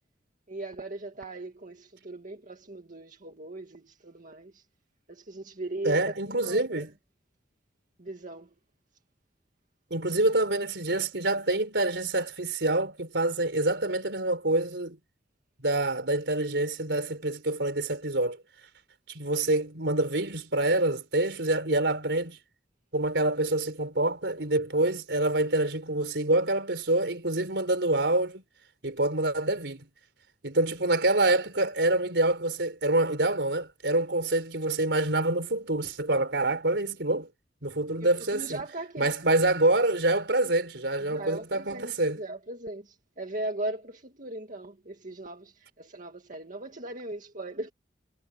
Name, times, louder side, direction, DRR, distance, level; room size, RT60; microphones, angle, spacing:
voice 1, 0.5-4.6 5.1-6.9 8.0-8.5 10.1-10.2 38.0-39.1 41.0-47.7, right 2 dB, 45° right, 2.0 m, -38 dB
voice 2, 5.8-6.9 9.9-15.0 15.6-18.4 19.1-22.4 22.9-28.4 28.8-29.9 30.4-37.3 37.6-38.6 39.0-42.2, right 2 dB, 70° right, 4.5 m, -26 dB
head